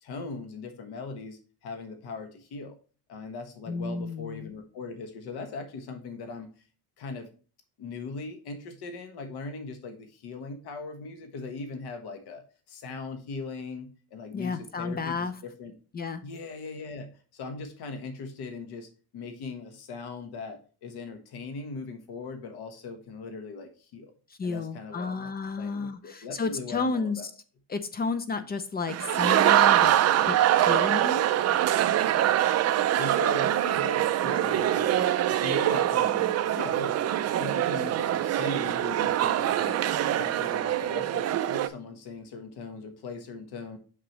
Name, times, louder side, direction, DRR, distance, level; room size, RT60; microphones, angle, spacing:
voice 1, 0.0-2.8 3.1-6.5 7.0-7.3 7.8-15.7 16.2-24.1 24.4-25.3 25.6-27.3 33.0-35.0 35.3-36.3 36.5-39.8 40.1-43.8, left 4 dB, 75° left, 6 dB, 1.4 m, -39 dB
voice 2, 3.7-4.5 14.3-15.3 15.9-16.2 24.4-27.3 27.7-31.3 36.1-36.2, left 4 dB, 25° left, 10 dB, 0.4 m, -32 dB
sound 1, 28.9-41.7, right 12 dB, 40° right, 0.5 m, -24 dB
6.1 x 6.0 x 3.0 m, 0.37 s
cardioid pair, 175°, 39 cm